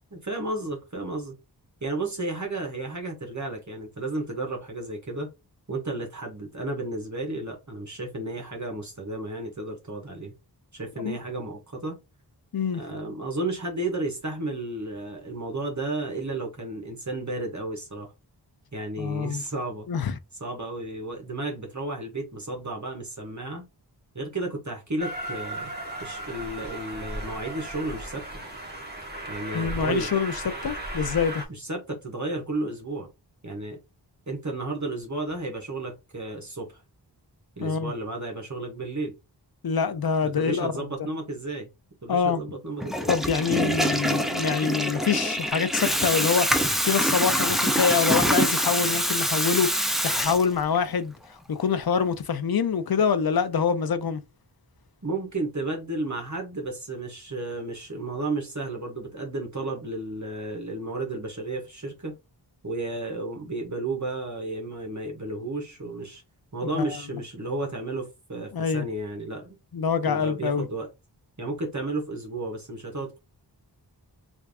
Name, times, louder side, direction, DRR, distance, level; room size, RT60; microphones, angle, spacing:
voice 1, 0.1-1.4 1.8-5.3 5.7-10.3 10.7-11.9 12.8-18.1 18.7-19.9 20.4-23.6 24.1-25.7 26.0-28.2 29.3-30.1 31.5-33.1 33.4-33.8 34.3-36.8 37.6-39.1 40.2-41.7 42.0-43.1 55.0-62.1 62.6-66.2 66.5-69.6 70.0-70.9 71.4-73.2, right 2 dB, 40° right, 1.2 m, -33 dB
voice 2, 19.0-19.4 19.9-20.2 29.5-30.3 30.6-31.4 37.6-37.9 39.6-40.8 42.1-42.4 43.1-46.5 46.8-51.1 51.5-54.2 66.7-67.0 68.5-68.8 69.7-70.7, left 6 dB, 60° left, 0.6 m, -25 dB
Train, 25.0-31.5, right 1 dB, 25° right, 1.1 m, -36 dB
Water tap faucet / Toilet flush, 42.8-50.8, equal, ahead, 0.5 m, -25 dB
3.4 x 2.5 x 3.5 m
wide cardioid pair, 55°, 42 cm